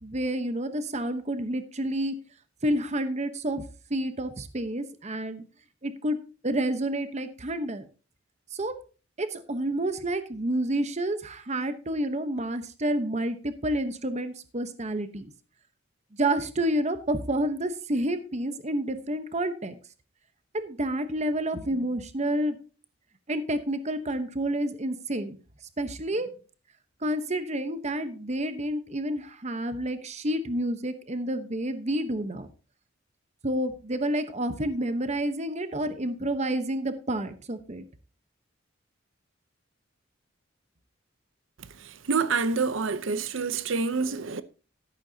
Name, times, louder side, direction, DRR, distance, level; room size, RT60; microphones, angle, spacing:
voice 1, 0.0-2.1 2.6-3.6 3.9-5.4 5.8-7.9 8.5-8.8 9.2-15.3 16.2-19.8 20.5-22.6 23.3-25.4 25.8-26.3 27.0-32.5 33.4-37.8, right 1 dB, 35° right, 1.0 m, -29 dB
voice 2, 42.1-44.4, right 4 dB, 80° right, 0.7 m, -27 dB
13.0 x 11.5 x 2.8 m
head